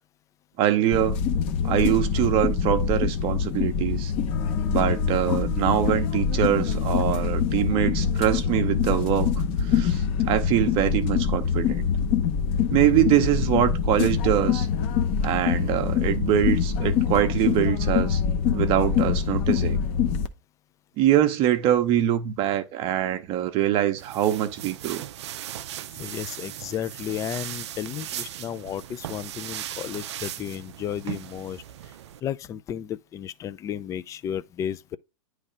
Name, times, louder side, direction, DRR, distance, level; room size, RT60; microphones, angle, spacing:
voice 1, 0.6-1.2 1.6-4.1 4.7-9.3 9.6-11.8 12.7-14.7 15.2-18.2 18.5-19.8 21.0-25.0, right 12 dB, 35° right, 0.8 m, -23 dB
sound 1, 0.9-20.3, left 7 dB, 35° left, 0.8 m, -24 dB
sound 2, 4.3-15.4, right 2 dB, 55° left, 1.7 m, -48 dB
sound 3, 24.0-32.2, right 12 dB, 60° right, 0.4 m, -37 dB
voice 2, 25.9-31.6 32.2-35.0, left 9 dB, 20° left, 0.4 m, -33 dB
9.7 x 3.3 x 5.1 m
hypercardioid pair, 110°, 16 cm